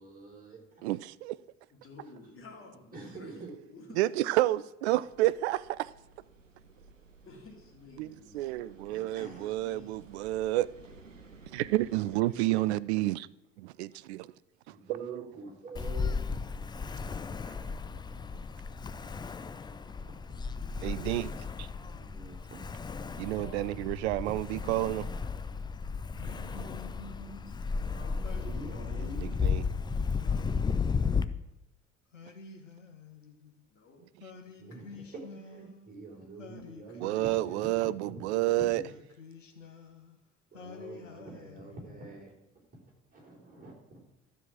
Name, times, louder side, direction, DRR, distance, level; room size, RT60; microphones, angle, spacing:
voice 1, 0.0-0.8 2.9-3.6 8.9-9.6 12.3-12.7 13.9-14.0 14.7-16.2 17.0-17.1 18.1-18.2 19.7-20.4 21.9-22.6 23.0-23.6 28.0-29.5 34.6-39.0 40.5-42.3 43.1-44.0, right 3 dB, 25° right, 4.3 m, -47 dB
voice 2, 0.8-1.4 4.0-5.9 8.0-10.7 11.5-13.3 13.6-14.3 15.0-15.2 20.8-21.3 21.6-21.7 23.2-25.0 29.4-29.6 37.0-38.8, right 16 dB, 60° right, 0.5 m, -30 dB
voice 3, 1.7-3.3 3.7-4.4 7.2-9.9 19.8-21.2 23.3-23.7 27.9-28.9 33.7-34.0, left 3 dB, 35° left, 3.1 m, -53 dB
sound 1, 5.0-12.2, right 4 dB, 85° right, 0.8 m, -55 dB
Ocean, 15.8-31.2, left 5 dB, 10° left, 0.4 m, -34 dB
Singing, 26.1-27.6 28.2-29.6 30.2-31.5 32.1-33.6 34.2-36.0 36.4-38.0 38.5-40.2 40.5-42.2, left 4 dB, 85° left, 1.0 m, -49 dB
12.5 x 5.0 x 7.3 m
figure-of-eight pair, 60°, 37 cm